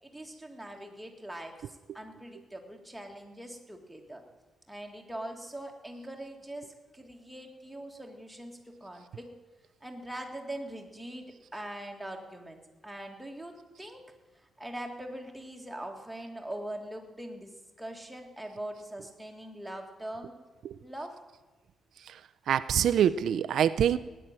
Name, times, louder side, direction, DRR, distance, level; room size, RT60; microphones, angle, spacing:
voice 1, 0.0-4.2 4.7-9.3 9.8-14.0 14.6-20.4 20.8-21.2, right 1 dB, ahead, 1 dB, 1.9 m, -42 dB
voice 2, 22.5-24.0, right 9 dB, 70° right, 13 dB, 0.5 m, -25 dB
16.0 x 10.0 x 9.0 m, 1.2 s
wide cardioid pair, 170°, 0 cm